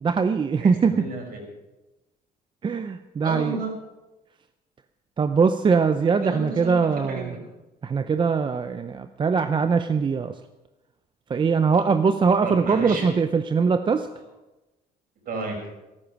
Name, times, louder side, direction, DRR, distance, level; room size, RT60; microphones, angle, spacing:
voice 1, 0.0-1.0 2.6-3.6 5.2-7.3 7.8-10.3 11.3-14.1, right 5 dB, 30° right, 9 dB, 0.6 m, -22 dB
voice 2, 0.6-1.4 3.2-3.7 6.2-7.4 12.4-13.1 15.3-15.7, right 3 dB, 60° right, 1 dB, 5.7 m, -32 dB
14.0 x 12.0 x 6.1 m, 1.1 s
cardioid pair, 110°, 17 cm